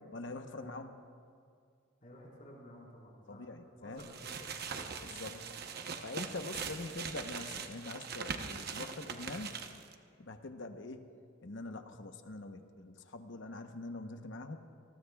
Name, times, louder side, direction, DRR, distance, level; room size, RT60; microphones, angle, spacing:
voice 1, 0.1-0.9 3.3-4.0 5.0-5.4 6.0-9.5 10.2-11.1 11.4-14.6, left 2 dB, 65° left, 7 dB, 0.9 m, -44 dB
voice 2, 2.0-3.5 3.8-5.5, equal, 45° left, -4 dB, 4.4 m, -53 dB
sound 1, 4.0-9.9, right 6 dB, 50° right, 0.9 m, -42 dB
27.5 x 20.0 x 2.3 m, 2.2 s
head